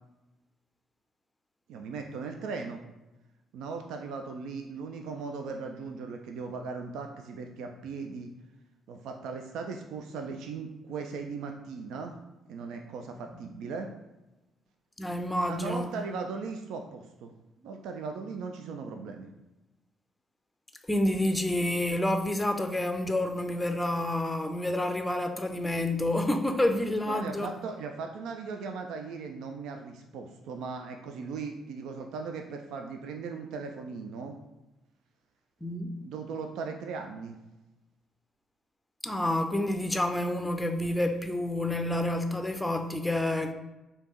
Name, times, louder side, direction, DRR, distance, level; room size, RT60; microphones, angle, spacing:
voice 1, 1.7-2.8 3.5-8.3 8.9-12.1 12.5-13.9 15.5-17.3 17.6-19.3 27.0-34.3 36.0-37.4, right 4 dB, 65° right, 0.3 m, -38 dB
voice 2, 15.0-15.9 20.9-27.5 35.6-36.0 39.0-43.5, left 1 dB, 10° left, 0.5 m, -28 dB
3.4 x 2.8 x 4.3 m
figure-of-eight pair, 45°, 0 cm